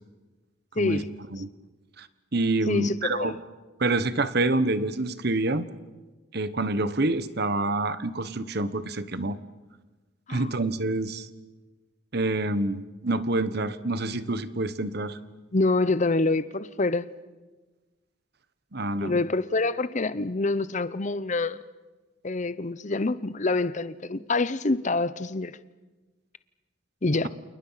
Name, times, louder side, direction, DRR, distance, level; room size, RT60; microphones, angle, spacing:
voice 1, 0.8-1.1 2.7-3.3 10.3-10.7 15.5-17.1 19.0-21.6 22.2-25.6 27.0-27.3, left 3 dB, 40° left, 0.8 m, -26 dB
voice 2, 2.3-3.4 3.8-5.6 6.3-9.4 10.3-11.3 12.1-15.2 18.7-19.2, right 2 dB, 55° right, 1.3 m, -27 dB
29.5 x 28.5 x 5.8 m
head